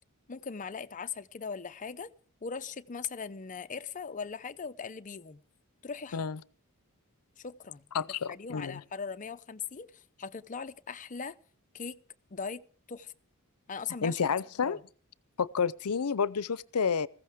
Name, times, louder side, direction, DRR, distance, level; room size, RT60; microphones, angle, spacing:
voice 1, 0.3-2.1 2.4-5.4 5.8-6.3 7.4-11.4 11.7-12.0 12.3-12.6 12.9-13.1 13.7-14.2 14.6-14.8, left 5 dB, 35° left, 0.6 m, -40 dB
voice 2, 7.9-8.8 14.0-14.8 15.4-17.1, left 6 dB, 85° left, 0.6 m, -30 dB
20.0 x 15.5 x 3.6 m
head